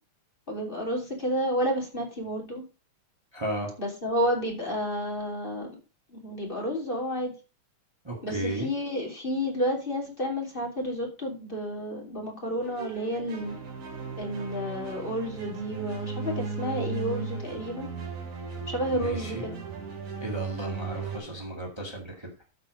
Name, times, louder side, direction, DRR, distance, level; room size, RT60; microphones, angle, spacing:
voice 1, 0.5-2.6 3.8-5.8 6.1-7.3 8.2-13.6 14.2-17.9 18.7-19.6, equal, 15° left, 0 dB, 2.6 m, -31 dB
voice 2, 3.3-3.7 8.0-8.7 18.9-19.4 20.2-22.4, right 1 dB, 30° right, 0 dB, 0.5 m, -34 dB
sound 1, 12.6-21.2, right 5 dB, 80° right, 4.5 m, -36 dB
14.0 x 4.9 x 5.0 m, 0.32 s
omnidirectional pair, 4.1 m